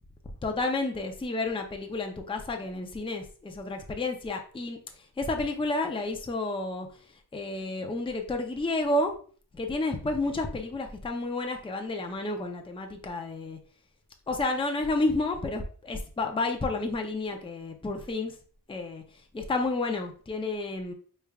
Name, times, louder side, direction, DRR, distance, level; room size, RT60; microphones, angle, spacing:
voice 1, 0.4-4.8 5.2-6.9 7.3-9.1 9.5-13.6 14.3-18.3 18.7-19.0 19.3-20.9, left 2 dB, 15° left, 4 dB, 0.5 m, -30 dB
4.6 x 3.3 x 2.2 m, 0.43 s
wide cardioid pair, 115°, 38 cm